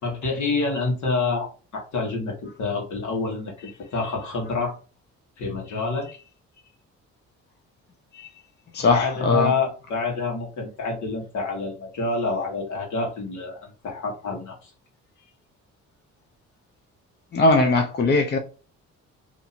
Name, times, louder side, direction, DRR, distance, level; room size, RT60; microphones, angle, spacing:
voice 1, 0.0-4.7 5.4-6.1 8.9-14.7, left 3 dB, 70° left, 1.6 m, -27 dB
voice 2, 8.7-9.5 17.3-18.4, left 2 dB, 35° left, 0.6 m, -20 dB
2.9 x 2.6 x 4.1 m
cardioid pair, 90°, 30 cm